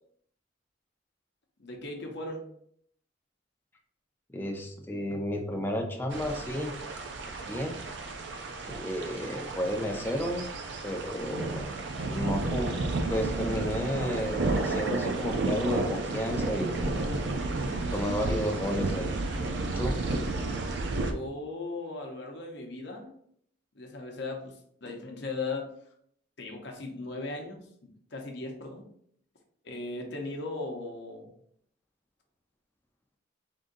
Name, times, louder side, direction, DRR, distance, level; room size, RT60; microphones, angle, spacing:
voice 1, 1.6-2.5 21.0-23.1 23.7-25.7 26.4-28.8 29.6-31.3, left 2 dB, 55° left, 2 dB, 0.7 m, -38 dB
voice 2, 4.3-6.7 7.5-7.8 8.7-10.5 10.8-11.6 12.1-12.7 13.1-16.9 17.9-19.1 19.7-20.0, equal, 10° left, 2 dB, 0.4 m, -32 dB
sound 1, 6.1-21.1, right 2 dB, 60° right, 0.5 m, -32 dB
3.7 x 2.7 x 3.8 m, 0.66 s
head